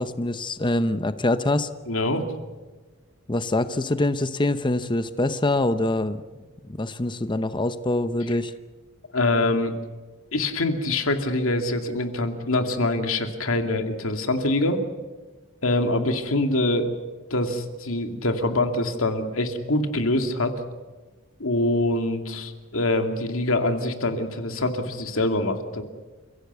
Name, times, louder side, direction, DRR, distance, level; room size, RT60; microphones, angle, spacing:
voice 1, 0.0-1.7 3.3-6.2 6.8-8.5, left 2 dB, 25° left, 11 dB, 0.8 m, -24 dB
voice 2, 1.9-2.3 8.3-8.4 9.1-9.7 10.3-14.8 15.6-16.9 17.3-20.5 21.4-25.8, left 2 dB, 80° left, 6 dB, 2.5 m, -24 dB
29.5 x 16.5 x 8.1 m, 1.3 s
head